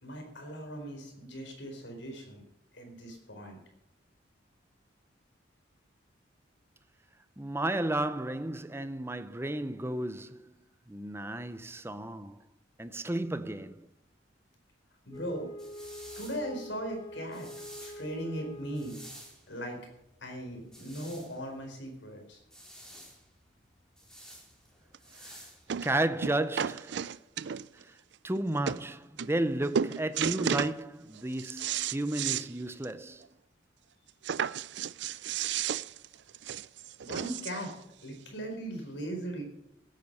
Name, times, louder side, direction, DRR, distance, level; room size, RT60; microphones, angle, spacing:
voice 1, 0.0-2.4 2.7-3.6 15.0-15.5 16.2-17.5 17.8-19.0 19.5-19.8 20.2-22.4 37.0-37.7 38.0-39.4, right 1 dB, 70° left, 4.5 m, -39 dB
voice 2, 7.4-10.6 10.9-12.4 12.8-13.9 25.2-25.4 25.8-27.1 27.4-27.9 28.2-33.3, right 1 dB, 15° right, 0.6 m, -33 dB
Wind instrument woodwind instrument, 15.1-19.3, equal, 20° left, 1.8 m, -45 dB
sound 1, 15.1-26.1, equal, 5° left, 3.3 m, -52 dB
sound 2, 24.9-25.0 25.7-25.9 26.2-27.8 28.4-28.5 28.7-28.8 29.2-29.5 29.7-30.8 31.2-32.5 32.8-32.9 33.2-33.3 34.2-37.7 38.5-38.6, right 8 dB, 65° right, 0.4 m, -33 dB
16.5 x 9.2 x 5.5 m
head